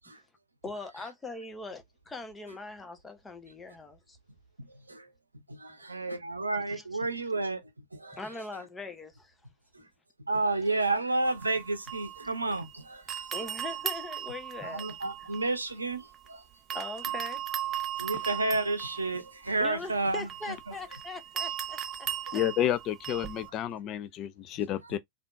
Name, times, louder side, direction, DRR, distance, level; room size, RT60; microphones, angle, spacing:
voice 1, 0.6-1.8 2.1-4.2 6.7-6.8 8.1-9.3 13.3-15.3 16.7-17.4 19.6-22.4, left 3 dB, 10° left, 0.7 m, -41 dB
voice 2, 4.6-5.1 5.8-8.2 9.7-9.9 10.2-13.3 14.6-16.4 18.0-20.3 20.7-20.8 22.3-22.4 24.8-25.0, right 3 dB, 80° right, 0.6 m, -31 dB
sound 1, 11.2-12.7 13.1-16.3 16.7-23.5, right 10 dB, 25° right, 0.5 m, -38 dB
voice 3, 22.3-25.0, left 11 dB, 35° left, 0.3 m, -30 dB
3.4 x 2.5 x 2.5 m
figure-of-eight pair, 90°, 0 cm